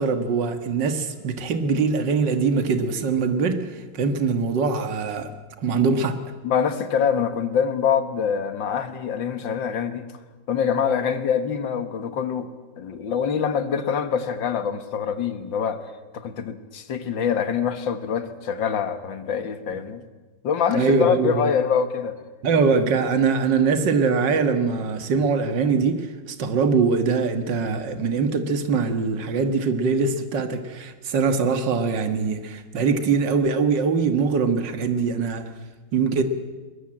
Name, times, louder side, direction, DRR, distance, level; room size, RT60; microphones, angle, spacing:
voice 1, 0.0-5.3 5.6-6.2 20.7-21.5 22.4-35.5 35.9-36.2, right 5 dB, 75° right, 8 dB, 2.2 m, -22 dB
voice 2, 6.4-10.1 10.5-12.5 12.8-20.0 20.4-22.2, left 7 dB, 90° left, 10 dB, 2.2 m, -25 dB
22.0 x 21.5 x 8.8 m, 1.3 s
omnidirectional pair, 2.0 m